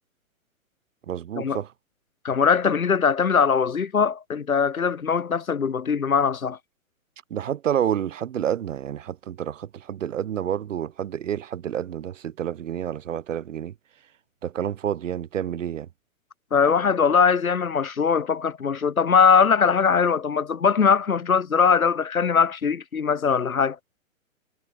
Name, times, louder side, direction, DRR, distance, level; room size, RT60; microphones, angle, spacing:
voice 1, 1.1-1.7 7.3-13.7 14.4-15.9, right 10 dB, 65° right, 2.6 m, -29 dB
voice 2, 2.2-6.6 16.5-23.8, left 6 dB, 85° left, 2.4 m, -21 dB
hypercardioid pair, 125°, 41 cm